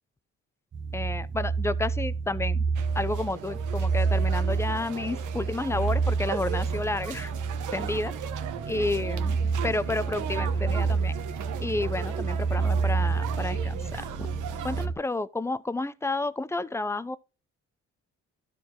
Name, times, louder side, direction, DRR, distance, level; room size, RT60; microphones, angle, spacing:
sound 1, 0.7-14.9, right 5 dB, 40° right, 1.2 m, -29 dB
voice 1, 0.9-2.6 2.9-7.3 7.7-8.1 8.7-9.4 9.6-11.2 11.6-14.0 14.6-17.2, left 2 dB, 10° left, 0.6 m, -31 dB
sound 2, 2.8-14.9, right 9 dB, 80° right, 1.1 m, -39 dB
12.5 x 4.6 x 3.8 m
cardioid pair, 90°, 30 cm